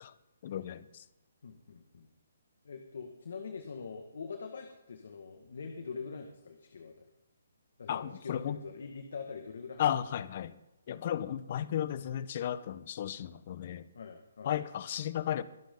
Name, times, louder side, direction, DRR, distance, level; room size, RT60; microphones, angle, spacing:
voice 1, 0.4-0.9 7.9-8.6 9.8-10.5 10.9-13.8 14.4-15.4, left 10 dB, 45° left, 15 dB, 1.0 m, -34 dB
voice 2, 1.4-2.1 2.6-7.1 7.8-10.0 13.9-14.5, left 5 dB, 65° left, 5 dB, 1.8 m, -44 dB
23.0 x 11.5 x 3.9 m, 0.95 s
hypercardioid pair, 150°, 0 cm